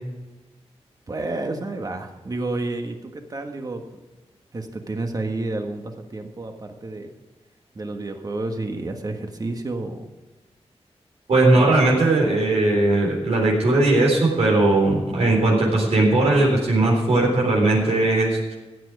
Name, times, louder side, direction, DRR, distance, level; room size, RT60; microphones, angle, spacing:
voice 1, 1.1-3.9 4.5-7.1 7.7-10.1 11.6-12.0, right 2 dB, 35° right, 4 dB, 1.6 m, -30 dB
voice 2, 11.3-18.5, right 2 dB, 75° right, -3 dB, 3.8 m, -18 dB
15.5 x 9.1 x 4.9 m, 1.2 s
wide cardioid pair, 130°, 11 cm